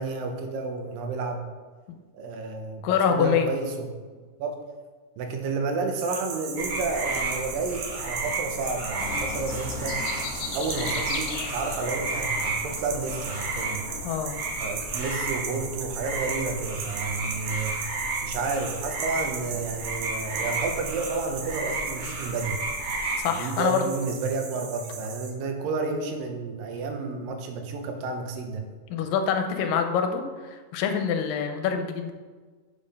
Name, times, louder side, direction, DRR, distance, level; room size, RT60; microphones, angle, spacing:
voice 1, 0.0-1.4 2.1-2.8 3.1-3.9 4.4-4.6 5.2-10.0 10.5-13.9 14.6-17.8 18.2-22.6 23.4-28.6, right 4 dB, 85° right, 4 dB, 2.6 m, -31 dB
voice 2, 2.8-3.5 14.0-14.4 23.2-23.9 28.9-32.1, left 7 dB, 90° left, 6 dB, 2.4 m, -25 dB
sound 1, 6.0-25.3, right 6 dB, 70° right, 1.9 m, -38 dB
sound 2, 6.6-23.2, right 2 dB, 50° right, 3.1 m, -33 dB
sound 3, 9.0-14.1, left 5 dB, 75° left, 2.5 m, -37 dB
6.9 x 5.3 x 5.4 m, 1.4 s
omnidirectional pair, 3.9 m